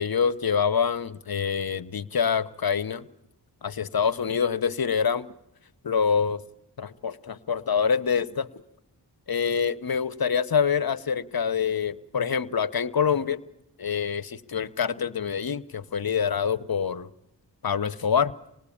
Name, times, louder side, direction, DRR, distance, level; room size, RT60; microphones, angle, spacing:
voice 1, 0.0-3.0 3.6-5.3 5.8-6.4 6.8-8.6 9.3-13.4 13.8-17.1 17.6-18.3, left 6 dB, 55° left, 15 dB, 0.9 m, -26 dB
26.0 x 19.5 x 8.6 m, 0.84 s
wide cardioid pair, 65°, 42 cm